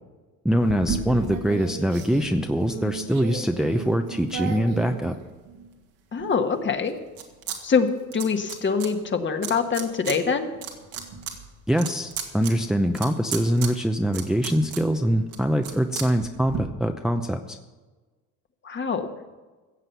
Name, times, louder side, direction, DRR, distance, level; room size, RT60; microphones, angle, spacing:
voice 1, 0.4-5.1 11.7-17.6, equal, ahead, 5 dB, 0.7 m, -23 dB
sound 1, 0.6-5.7 6.2-7.6 7.8-8.9 9.4-10.2 10.5-16.6, right 7 dB, 85° right, 2.1 m, -35 dB
voice 2, 6.1-7.0 7.6-10.5 18.6-19.1, left 5 dB, 35° left, 6 dB, 1.5 m, -24 dB
15.5 x 7.6 x 7.0 m, 1.2 s
cardioid pair, 95°, 33 cm